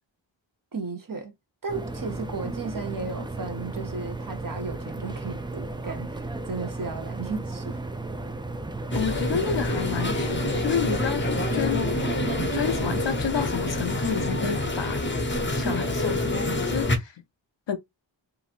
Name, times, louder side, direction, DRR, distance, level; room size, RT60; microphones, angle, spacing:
voice 1, 0.7-1.3 1.6-7.8, right 4 dB, 45° right, 0.8 m, -34 dB
sound 1, 1.7-13.1, right 2 dB, 10° right, 0.3 m, -35 dB
voice 2, 8.9-11.9 12.5-17.2 17.7-17.8, left 8 dB, 65° left, 0.6 m, -30 dB
sound 2, 8.9-17.0, left 1 dB, 25° left, 0.7 m, -27 dB
2.9 x 2.5 x 2.4 m
wide cardioid pair, 45°, 46 cm